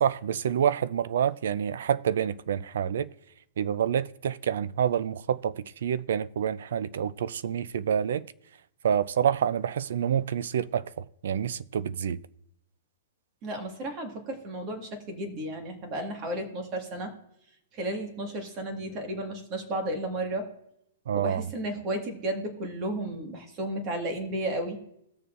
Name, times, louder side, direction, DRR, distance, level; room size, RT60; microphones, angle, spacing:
voice 1, 0.0-3.1 3.6-8.3 8.8-12.2 21.1-21.5, right 8 dB, 70° right, 0.4 m, -27 dB
voice 2, 13.4-17.1 17.7-20.5 21.1-24.8, right 1 dB, 30° right, 1.7 m, -33 dB
18.0 x 6.9 x 2.5 m
hypercardioid pair, 160°, 0 cm